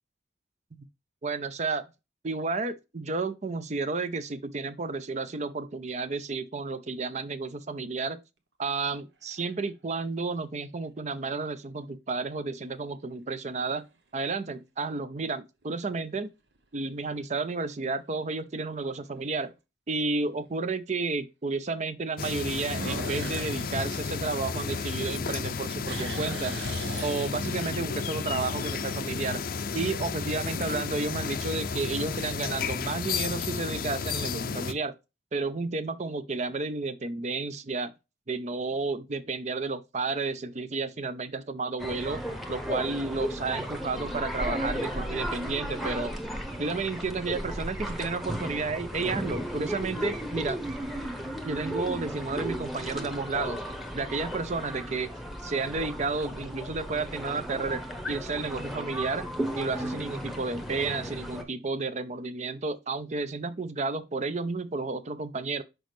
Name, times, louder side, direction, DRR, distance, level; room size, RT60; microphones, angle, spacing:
voice 1, 1.2-1.9 2.2-8.2 8.6-13.8 14.1-16.3 16.7-19.5 19.9-26.6 27.0-29.4 29.7-34.9 35.3-37.9 38.3-42.2 42.5-46.1 46.6-50.6 51.4-53.6 53.9-55.1 55.4-59.3 59.6-65.6, right 3 dB, 40° right, 0.6 m, -32 dB
sound 1, 9.0-9.6 10.3-10.4 15.6-16.1 16.6-16.7 17.2-17.3 17.6-17.7 19.2-19.3 22.6-25.1 25.5-27.8, right 3 dB, 75° right, 1.0 m, -40 dB
sound 2, 22.2-34.7, left 5 dB, 55° left, 0.5 m, -32 dB
sound 3, 41.8-61.4, equal, ahead, 1.0 m, -35 dB
6.2 x 5.1 x 3.2 m
head